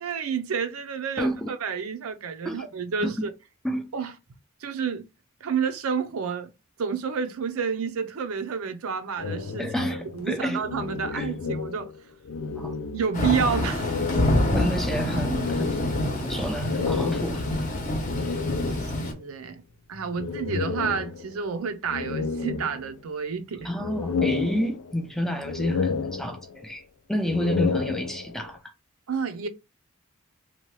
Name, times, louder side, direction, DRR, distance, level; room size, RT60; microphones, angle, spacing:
voice 1, 0.0-3.3 3.9-4.1 4.6-5.1 5.4-6.5 6.8-9.7 10.1-11.9 12.9-14.0 18.9-19.6 19.9-23.7 29.1-29.5, right 6 dB, 85° right, 0.5 m, -29 dB
voice 2, 1.2-1.5 2.5-2.7 3.0-3.3 3.6-3.9 9.6-10.7 11.1-11.3 12.6-12.7 14.5-15.9 16.1-17.5 23.6-26.8 27.1-28.7, equal, ahead, 0.3 m, -29 dB
sound 1, 9.2-12.0 12.2-13.4 13.8-19.2 20.2-21.5 21.9-23.2 23.6-25.1 25.4-26.7 27.2-28.5, left 5 dB, 85° left, 0.4 m, -31 dB
Thunder / Rain, 13.1-19.1, left 1 dB, 35° left, 0.7 m, -27 dB
2.9 x 2.2 x 3.0 m
head